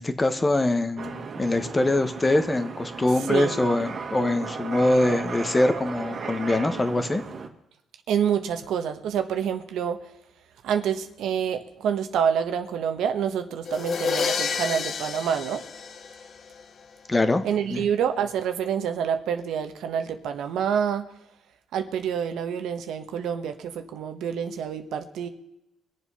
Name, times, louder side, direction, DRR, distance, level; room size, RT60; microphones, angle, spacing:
voice 1, 0.0-7.2 17.1-17.4 17.7-17.8, left 2 dB, 20° left, 9 dB, 1.3 m, -23 dB
sound 1, 1.0-7.5, right 5 dB, 50° right, 1.8 m, -35 dB
voice 2, 8.1-10.0 10.6-15.6 17.4-21.0 21.7-25.3, right 8 dB, 80° right, 8 dB, 1.3 m, -27 dB
sound 2, 13.7-16.6, left 6 dB, 50° left, 0.9 m, -29 dB
23.0 x 7.7 x 5.7 m, 0.87 s
cardioid pair, 90°, 0 cm